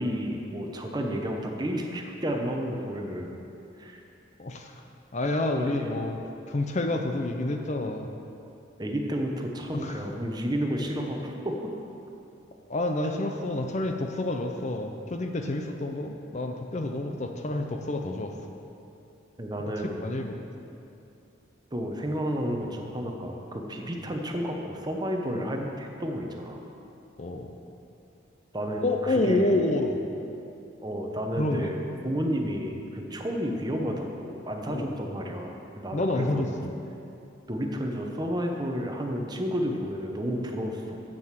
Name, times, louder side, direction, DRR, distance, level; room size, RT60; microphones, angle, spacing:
voice 1, 0.0-3.4 3.8-4.0 5.6-5.7 8.8-11.6 19.4-20.0 21.7-26.6 28.5-29.5 30.8-31.8 32.0-36.5 37.5-41.0, equal, 20° right, 2 dB, 0.8 m, -31 dB
voice 2, 4.4-4.7 5.1-6.2 6.5-8.1 9.8-10.0 12.7-18.3 20.0-20.3 27.2-27.5 28.8-30.0 31.4-31.8 34.7-34.9 35.9-36.7, left 2 dB, 35° left, 4 dB, 0.6 m, -28 dB
7.7 x 7.7 x 7.4 m, 2.7 s
head